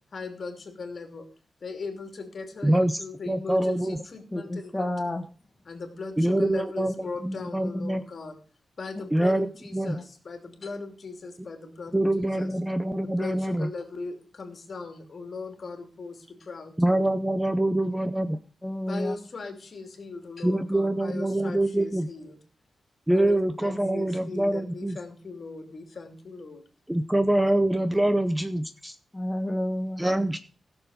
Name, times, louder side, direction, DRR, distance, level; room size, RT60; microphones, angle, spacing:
voice 1, 0.1-1.3 1.6-4.9 5.6-8.4 8.8-12.5 13.0-17.1 18.9-22.4 23.1-26.6 27.9-28.1, left 4 dB, 45° left, 4 dB, 2.9 m, -39 dB
voice 2, 2.6-3.0 3.3-4.0 6.2-6.9 7.2-8.0 9.1-10.0 11.9-13.7 16.8-18.4 20.4-22.1 23.1-25.0 26.9-28.9 30.0-30.4, right 1 dB, 5° right, 10 dB, 0.6 m, -25 dB
voice 3, 4.3-5.2 8.9-9.0 9.9-10.0 18.6-19.1 29.1-30.1, left 1 dB, 15° left, 2 dB, 1.2 m, -30 dB
16.5 x 7.0 x 5.0 m, 0.40 s
wide cardioid pair, 140°, 0 cm